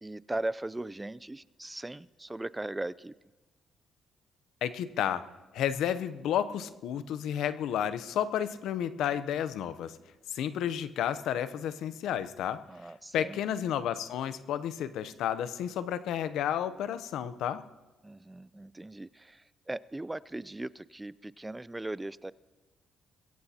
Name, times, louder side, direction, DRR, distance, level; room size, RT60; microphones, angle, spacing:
voice 1, 0.0-3.1 12.7-13.4 18.0-22.3, right 2 dB, 15° right, 19 dB, 0.3 m, -38 dB
voice 2, 4.6-5.3 5.5-10.0 10.3-12.6 13.1-17.6, left 10 dB, 80° left, 13 dB, 0.7 m, -31 dB
21.5 x 16.5 x 2.9 m, 1.2 s
cardioid pair, 90°, 0 cm